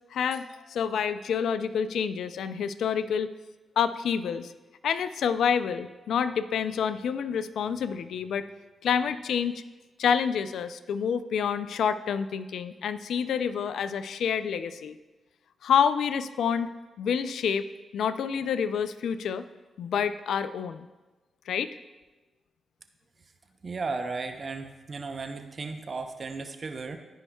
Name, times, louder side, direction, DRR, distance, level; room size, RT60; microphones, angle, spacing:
voice 1, 0.1-3.3 3.8-4.5 4.8-8.5 8.8-9.5 10.0-14.9 15.6-16.7 17.0-17.7 17.9-19.4 19.8-20.9 21.5-21.7, left 7 dB, 75° left, 13 dB, 0.3 m, -28 dB
voice 2, 23.6-27.0, right 4 dB, 50° right, 7 dB, 0.7 m, -35 dB
14.0 x 5.4 x 2.3 m, 1.2 s
supercardioid pair, 40°, 0 cm